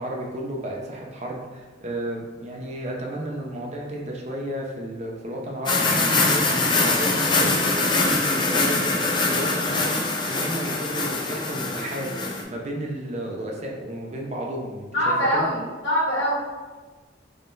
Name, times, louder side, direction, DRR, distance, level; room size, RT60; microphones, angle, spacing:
voice 1, 0.0-12.2 12.5-15.5, right 1 dB, 35° right, -1 dB, 0.5 m, -33 dB
sound 1, 5.7-12.4, left 3 dB, 25° left, 0.4 m, -23 dB
voice 2, 14.9-16.4, equal, 65° left, -7 dB, 1.4 m, -23 dB
3.6 x 3.2 x 2.6 m, 1.3 s
head